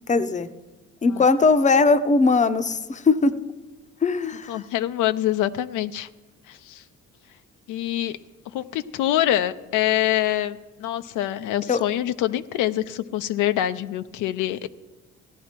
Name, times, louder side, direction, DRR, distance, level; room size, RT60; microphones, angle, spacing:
voice 1, 0.1-0.5 1.0-3.3 4.0-4.6 11.7-11.8, left 4 dB, 25° left, 11 dB, 0.6 m, -19 dB
voice 2, 4.5-6.1 6.5-6.8 7.7-8.2 8.5-14.7, left 13 dB, 90° left, 10 dB, 0.5 m, -25 dB
15.5 x 10.0 x 4.4 m, 1.2 s
cardioid pair, 90°, 30 cm